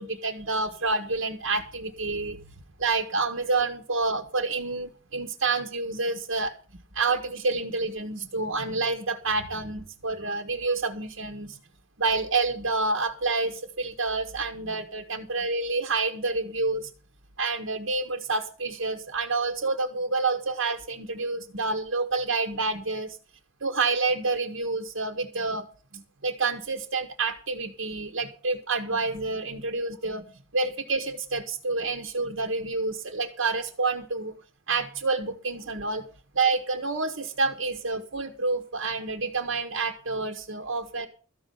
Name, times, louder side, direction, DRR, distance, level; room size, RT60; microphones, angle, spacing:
voice 1, 0.0-2.4 2.8-11.6 12.0-16.9 17.4-23.2 23.6-25.7 25.9-30.3 30.5-34.3 34.7-36.0 36.3-41.1, right 3 dB, 65° right, 2 dB, 1.3 m, -28 dB
14.0 x 5.5 x 9.2 m, 0.40 s
head